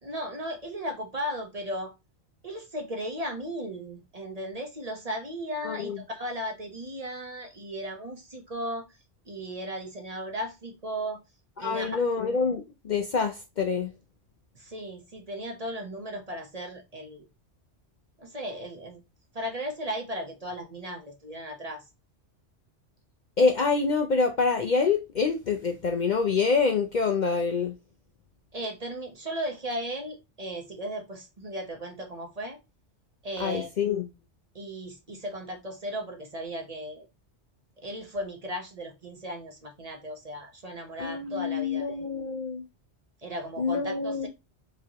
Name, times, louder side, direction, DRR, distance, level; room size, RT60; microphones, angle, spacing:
voice 1, 0.0-1.9 2.4-8.9 9.3-11.2 11.6-12.0 14.5-17.2 18.2-19.0 19.3-21.8 28.5-32.6 33.2-33.7 34.5-37.1 37.8-42.0 43.2-44.3, equal, 35° right, 0.9 m, -36 dB
voice 2, 5.6-6.0 11.6-13.9 23.4-27.7 33.4-34.1 41.0-42.6 43.6-44.3, left 4 dB, 50° left, 0.6 m, -26 dB
4.9 x 3.0 x 2.8 m
omnidirectional pair, 1.2 m